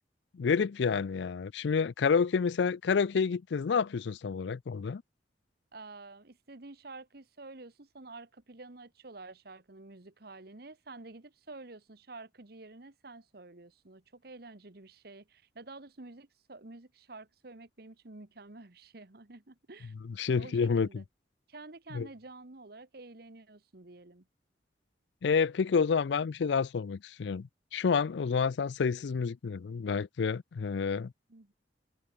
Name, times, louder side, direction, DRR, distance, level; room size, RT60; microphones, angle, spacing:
voice 1, 0.3-5.0 20.2-21.0 21.9-22.1 25.2-31.1, left 5 dB, 75° left, 0.4 m, -29 dB
voice 2, 5.7-19.9 20.4-21.0 21.5-24.3 31.3-31.5, right 3 dB, 55° right, 1.3 m, -49 dB
head